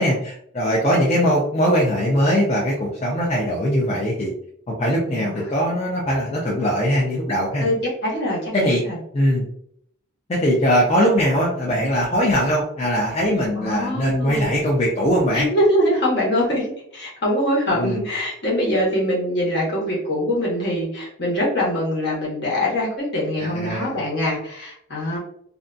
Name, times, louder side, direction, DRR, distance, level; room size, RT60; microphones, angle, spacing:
voice 1, 0.0-4.3 4.7-7.7 8.5-8.8 9.1-9.4 10.3-15.5 17.7-18.0 23.4-24.0, equal, 30° left, -4 dB, 0.4 m, -21 dB
voice 2, 5.1-5.5 7.6-8.5 8.8-9.0 13.5-14.5 15.3-25.2, equal, 50° left, -4 dB, 1.0 m, -23 dB
2.5 x 2.2 x 2.4 m, 0.68 s
head